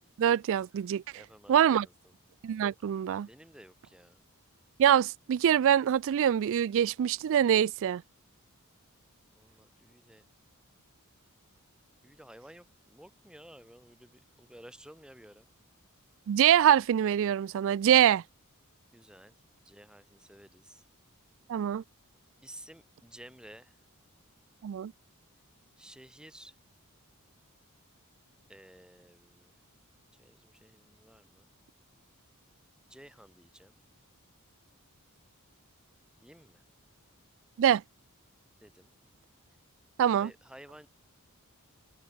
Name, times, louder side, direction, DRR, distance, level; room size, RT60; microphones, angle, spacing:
voice 1, 0.2-1.0 1.5-1.9 2.4-3.3 4.8-8.0 16.3-18.2 21.5-21.8 24.6-24.9 37.6-37.8 40.0-40.3, right 9 dB, 60° right, 0.3 m, -24 dB
voice 2, 1.1-2.2 3.3-4.2 9.4-10.2 12.0-15.5 18.9-19.3 19.7-20.8 22.4-23.8 25.8-26.6 28.5-29.5 30.2-31.5 32.9-33.7 36.2-36.6 38.6-38.9 40.2-40.9, right 1 dB, 5° right, 1.9 m, -53 dB
head